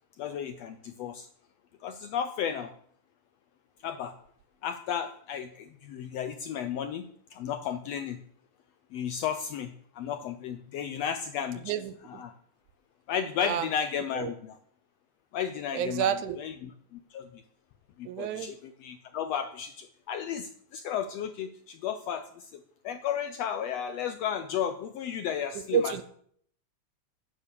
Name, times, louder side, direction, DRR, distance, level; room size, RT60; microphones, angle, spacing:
voice 1, 0.2-1.3 1.8-2.7 3.8-4.1 4.6-8.2 8.9-11.7 12.0-12.3 13.1-14.6 15.3-17.4 18.0-26.0, left 8 dB, 75° left, 9 dB, 1.5 m, -34 dB
voice 2, 11.7-12.2 13.4-13.7 14.2-14.3 15.7-16.4 18.1-18.5 25.7-26.0, right 8 dB, 80° right, 12 dB, 2.3 m, -29 dB
9.8 x 9.6 x 6.8 m, 0.62 s
omnidirectional pair, 3.6 m